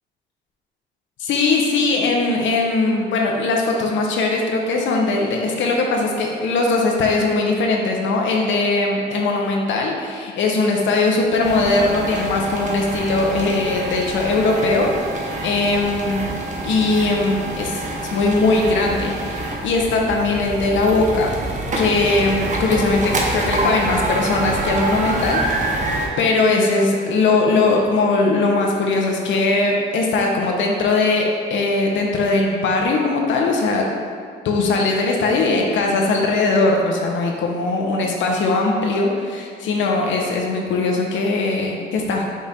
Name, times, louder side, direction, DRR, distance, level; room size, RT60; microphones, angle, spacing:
voice 1, 1.2-16.4 16.6-17.8 18.1-21.4 21.8-25.8 26.2-33.9 34.4-42.2, left 3 dB, 75° left, 0 dB, 0.7 m, -20 dB
sound 1, 11.4-26.1, right 2 dB, 40° right, 0.7 m, -26 dB
5.4 x 2.4 x 4.1 m, 2.2 s
cardioid pair, 90°, 20 cm